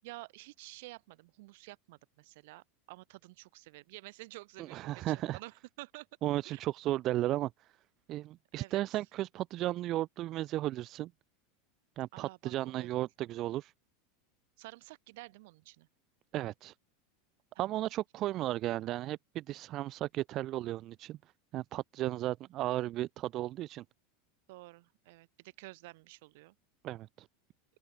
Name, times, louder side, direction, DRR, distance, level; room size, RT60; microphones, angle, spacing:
voice 1, 0.0-6.1 6.4-6.6 8.5-9.0 12.1-13.0 14.6-15.9 17.5-17.9 24.5-26.5, right 22 dB, 60° right, 6.3 m, -51 dB
voice 2, 4.6-5.4 6.2-7.7 8.1-11.1 12.0-13.7 16.3-16.7 17.6-21.2 21.5-23.8 26.8-27.3, right 15 dB, 35° right, 0.5 m, -34 dB
open air
supercardioid pair, 165°, 0 cm